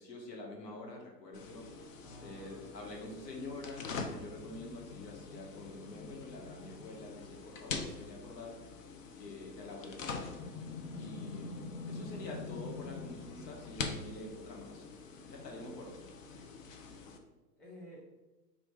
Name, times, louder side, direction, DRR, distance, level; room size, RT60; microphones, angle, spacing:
voice 1, 0.0-1.7 2.2-8.6 9.1-10.5 10.9-11.5 11.9-14.9 15.3-16.0, left 2 dB, 80° left, 0 dB, 1.5 m, -46 dB
sound 1, 1.3-17.2, left 4 dB, 55° left, 0.7 m, -44 dB
voice 2, 2.0-3.3 11.0-11.5 17.6-18.0, equal, ahead, -7 dB, 0.9 m, -54 dB
4.4 x 2.6 x 4.6 m, 1.1 s
hypercardioid pair, 130°, 49 cm